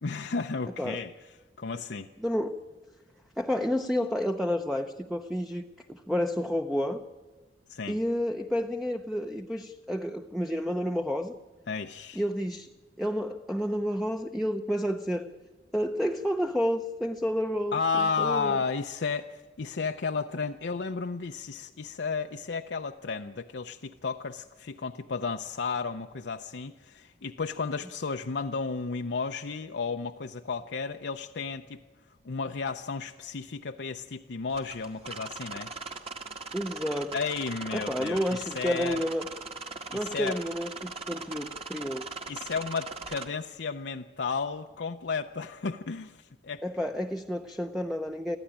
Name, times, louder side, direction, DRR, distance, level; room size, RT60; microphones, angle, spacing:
voice 1, 0.0-1.1 1.6-2.1 7.7-8.0 11.7-12.2 17.7-31.8 32.2-35.7 37.1-39.1 39.9-40.4 42.3-46.6, left 5 dB, 70° left, 6 dB, 0.6 m, -33 dB
voice 2, 2.2-2.6 3.4-5.6 5.9-7.0 7.9-11.4 12.2-12.7 13.0-15.3 15.7-17.8 18.2-18.6 36.5-37.1 37.7-39.3 39.9-42.1 46.6-48.4, equal, ahead, 5 dB, 0.7 m, -30 dB
sound 1, 34.5-43.3, right 4 dB, 35° right, 1.8 m, -40 dB
23.5 x 14.5 x 10.0 m, 1.3 s
head